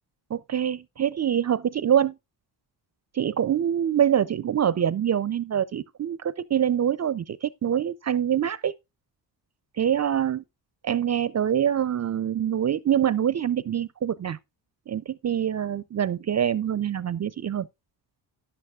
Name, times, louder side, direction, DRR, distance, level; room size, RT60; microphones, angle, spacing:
voice 1, 0.3-2.1 3.1-8.7 9.8-10.4 10.8-14.4 14.9-17.7, right 9 dB, 40° right, 0.4 m, -25 dB
11.5 x 11.0 x 2.3 m
wide cardioid pair, 140°, 42 cm